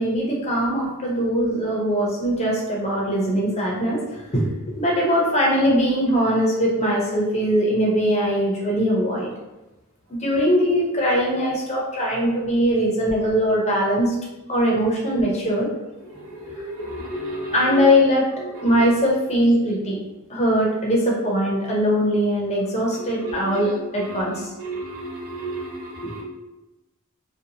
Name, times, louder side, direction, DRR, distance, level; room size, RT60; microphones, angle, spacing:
voice 1, 0.0-9.3 10.1-14.1 14.5-15.7 16.6-16.7 17.5-18.3 18.6-20.0 20.3-24.5, equal, 30° left, -3 dB, 0.6 m, -21 dB
voice 2, 16.0-17.9 18.4-18.9 22.9-26.2, right 1 dB, 65° right, -3 dB, 0.7 m, -33 dB
2.6 x 2.2 x 2.7 m, 1.0 s
head